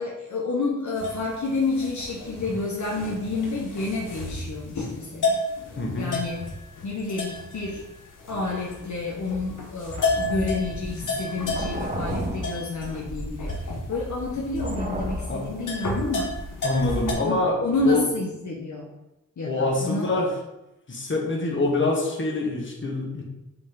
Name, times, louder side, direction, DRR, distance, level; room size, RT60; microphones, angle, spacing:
voice 1, 0.0-5.4 6.0-6.4 6.8-7.8 8.3-13.5 13.9-16.4 17.2-18.9 19.4-20.1, left 3 dB, 65° left, -3 dB, 1.1 m, -29 dB
sound 1, 1.0-17.1, left 2 dB, 80° left, 1.3 m, -32 dB
voice 2, 5.8-6.1 15.3-15.4 16.6-17.6 17.8-18.0 19.4-20.3 20.9-23.2, left 2 dB, 40° left, -1 dB, 1.6 m, -25 dB
sound 2, 9.9-17.4 17.7-17.9, equal, 25° right, 1.0 m, -34 dB
8.4 x 3.3 x 3.9 m, 0.92 s
wide cardioid pair, 85°, 31 cm